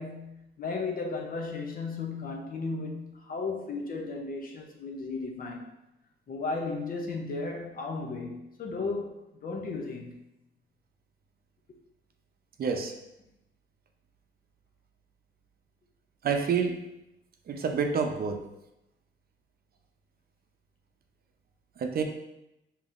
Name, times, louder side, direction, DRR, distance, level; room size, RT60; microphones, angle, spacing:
voice 1, 0.0-5.7 6.3-10.1, left 3 dB, 45° left, 1 dB, 0.6 m, -35 dB
voice 2, 12.6-12.9 16.2-16.8 17.5-18.4 21.8-22.0, right 6 dB, 50° right, 4 dB, 0.6 m, -28 dB
5.1 x 2.9 x 2.5 m, 0.89 s
cardioid pair, 90°, 20 cm